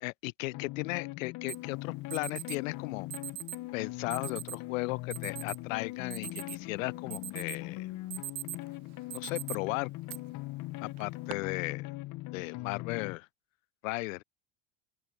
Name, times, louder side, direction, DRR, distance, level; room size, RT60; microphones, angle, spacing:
voice 1, 0.0-3.1 3.7-7.9 9.1-9.9 10.8-11.9 12.3-13.3 13.8-14.2, left 23 dB, 75° left, 0.5 m, -36 dB
sound 1, 0.5-13.2, left 19 dB, 50° left, 0.9 m, -41 dB
Alarm, 1.5-1.6 2.1-2.6 3.1-3.6 4.1-4.6 5.1-5.6 6.0-6.7 7.1-7.6 8.0-8.7 9.1-9.6 10.1-10.2 11.0-11.3, right 22 dB, 55° right, 0.9 m, -40 dB
open air
hypercardioid pair, 80°, 40 cm